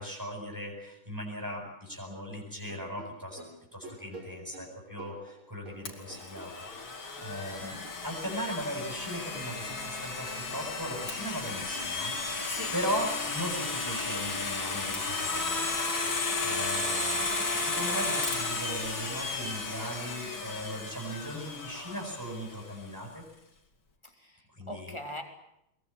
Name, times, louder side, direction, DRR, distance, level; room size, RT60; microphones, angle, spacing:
voice 1, 0.0-3.4 3.7-15.8 16.0-23.2 24.6-24.9, equal, 10° right, -2 dB, 8.0 m, -38 dB
sound 1, 2.6-6.9 7.2-10.1 10.4-11.2 11.5-17.3, right 2 dB, 80° right, 7.2 m, -51 dB
Domestic sounds home sounds, 5.9-22.6, left 3 dB, 70° left, 3.9 m, -34 dB
voice 2, 24.0-25.2, left 1 dB, 15° left, 3 dB, 3.6 m, -41 dB
22.5 x 22.0 x 8.9 m, 0.82 s
omnidirectional pair, 2.2 m